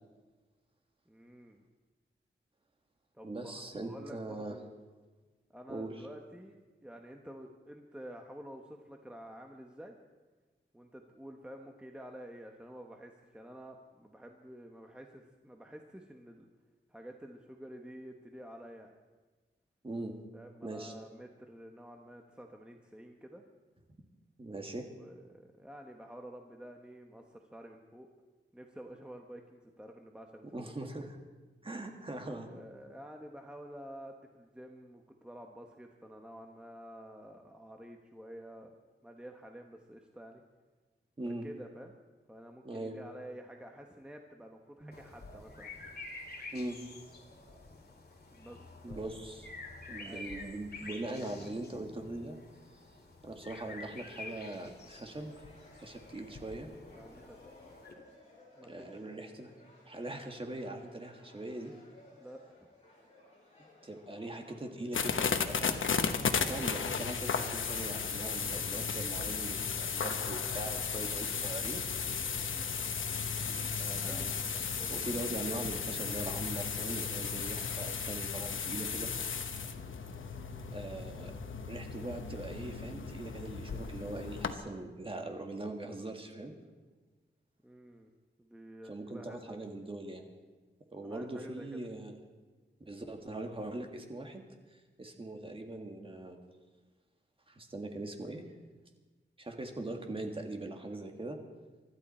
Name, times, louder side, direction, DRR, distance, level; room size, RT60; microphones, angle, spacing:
voice 1, 1.1-1.6 3.1-4.7 5.5-10.0 10.7-16.5 16.9-18.9 20.3-23.4 25.0-28.1 28.5-30.5 30.8-30.9 32.4-38.7 39.0-40.4 41.3-42.0 42.3-45.7 48.3-49.1 50.0-50.5 56.9-57.4 58.5-59.2 62.1-62.7 72.4-72.7 74.0-75.2 80.4-80.7 87.6-88.1 88.4-89.6 91.0-91.8, equal, 5° right, 2 dB, 1.0 m, -50 dB
voice 2, 3.2-4.5 5.7-5.9 19.8-20.1 20.6-20.9 24.4-24.9 30.5-31.1 31.6-32.5 41.2-41.5 42.6-43.0 44.8-44.9 46.5-46.8 48.8-49.5 49.9-52.4 53.2-55.3 55.8-56.7 58.7-59.5 59.8-61.7 63.8-65.8 66.5-71.8 73.5-74.4 74.9-79.1 80.7-81.4 81.7-86.5 88.8-90.2 90.9-92.1 92.8-94.4 94.7-96.4 97.5-98.4 99.4-101.4, right 2 dB, 25° right, 3 dB, 1.7 m, -41 dB
sound 1, 44.9-57.9, left 3 dB, 55° left, 2.4 m, -49 dB
sound 2, 54.0-72.6, left 1 dB, 35° left, 5.8 m, -60 dB
sound 3, 64.9-84.5, left 6 dB, 85° left, 1.0 m, -35 dB
24.5 x 13.0 x 4.3 m, 1.3 s
wide cardioid pair, 145°, 20 cm